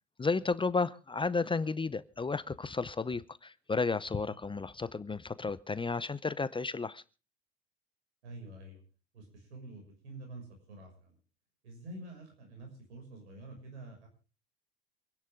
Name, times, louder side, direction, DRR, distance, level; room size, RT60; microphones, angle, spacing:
voice 1, 0.2-7.0, left 4 dB, 15° left, 17 dB, 0.7 m, -33 dB
voice 2, 8.2-8.8 9.1-11.1 11.6-14.1, right 2 dB, 85° right, 4 dB, 6.5 m, -48 dB
27.0 x 10.5 x 3.7 m, 0.35 s
hypercardioid pair, 80°, 33 cm